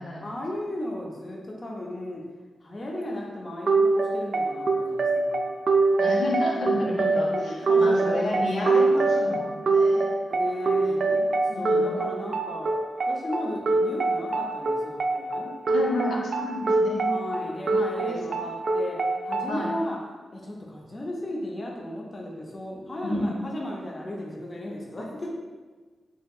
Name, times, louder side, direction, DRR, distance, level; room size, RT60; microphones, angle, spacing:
voice 1, 0.2-2.2 2.6-5.5 6.9-9.4 10.3-11.1 11.4-12.7 13.1-15.5 17.0-19.0 19.2-20.0 20.3-25.3, left 1 dB, 25° left, -2 dB, 0.4 m, -35 dB
sound 1, 3.7-19.7, right 3 dB, 50° right, 0.3 m, -24 dB
voice 2, 6.0-10.2 10.8-11.2 11.5-12.2 15.7-17.1 17.3-17.8 18.0-18.2 19.5-19.7 23.0-23.3, left 1 dB, 80° left, -2 dB, 0.6 m, -31 dB
4.4 x 2.7 x 2.3 m, 1.4 s
wide cardioid pair, 170°, 0 cm